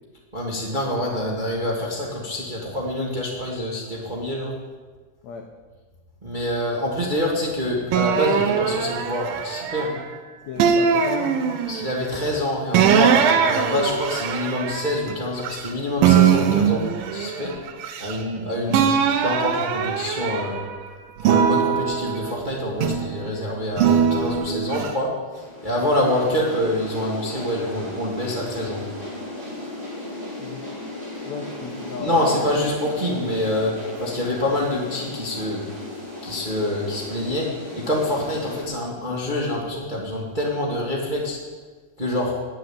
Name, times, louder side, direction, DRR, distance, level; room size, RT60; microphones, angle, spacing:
voice 1, 0.3-4.5 6.2-9.9 11.7-17.5 18.0-18.9 19.2-20.6 21.2-28.8 32.0-33.7 34.0-35.6 36.2-37.5 37.7-41.4 42.0-42.3, left 1 dB, 30° right, -3 dB, 0.8 m, -26 dB
sound 1, 7.9-10.1 10.6-12.0 12.7-15.7 16.0-18.4 18.7-20.7 21.2-23.2 23.8-24.9, right 7 dB, 75° right, 2.4 m, -21 dB
voice 2, 10.4-11.6 18.6-18.9 30.4-30.6 31.2-32.4, left 6 dB, 85° left, 3 dB, 1.5 m, -35 dB
sound 2, 25.3-38.6, left 1 dB, 10° right, 4.1 m, -35 dB
11.0 x 7.9 x 8.7 m, 1.4 s
omnidirectional pair, 4.5 m